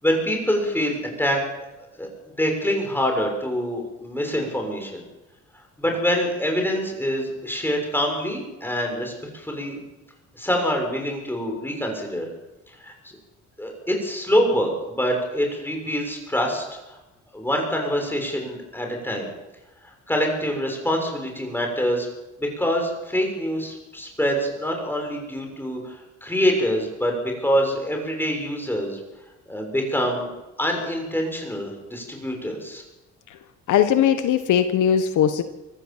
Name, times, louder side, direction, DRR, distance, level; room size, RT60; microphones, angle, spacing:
voice 1, 0.0-1.4 2.0-2.1 2.4-5.0 5.8-9.8 10.4-12.3 12.8-12.9 13.6-16.6 17.3-19.3 20.1-22.1 22.4-29.0 29.5-30.3 30.6-32.8, equal, 5° left, 2 dB, 7.1 m, -25 dB
voice 2, 33.7-35.4, left 9 dB, 80° left, 9 dB, 1.3 m, -19 dB
24.5 x 15.0 x 7.5 m, 1.0 s
cardioid pair, 90°, 30 cm